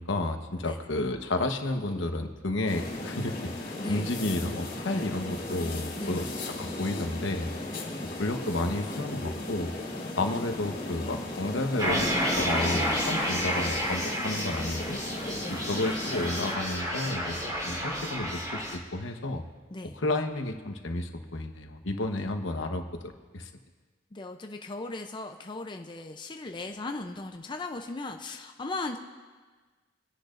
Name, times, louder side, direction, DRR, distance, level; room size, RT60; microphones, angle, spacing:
voice 1, 0.0-3.3 3.9-6.3 6.6-7.5 8.2-9.7 10.2-15.0 15.5-17.4 17.6-18.6 18.9-19.4 19.9-23.5, left 2 dB, 75° left, 5 dB, 1.1 m, -31 dB
sound 1, 2.7-16.5, left 2 dB, 45° left, 2.4 m, -36 dB
voice 2, 3.8-4.1 6.0-6.3 7.7-8.0 13.1-13.4 15.4-15.6 19.7-20.0 24.1-29.0, left 2 dB, 25° left, 4 dB, 0.5 m, -37 dB
sound 2, 11.8-18.8, equal, 20° right, 3.6 m, -30 dB
25.0 x 10.5 x 2.5 m, 1.4 s
head